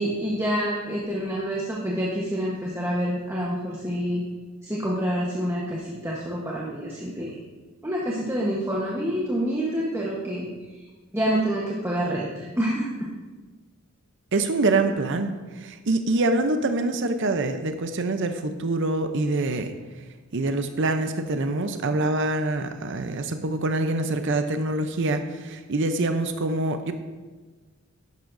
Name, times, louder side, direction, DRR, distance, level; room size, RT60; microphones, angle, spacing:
voice 1, 0.0-4.2 4.6-7.4 7.8-10.5 11.1-12.9, equal, 10° right, -4 dB, 1.0 m, -27 dB
voice 2, 14.3-19.7 20.3-26.9, right 2 dB, 60° right, 8 dB, 0.6 m, -25 dB
11.5 x 10.5 x 2.6 m, 1.3 s
head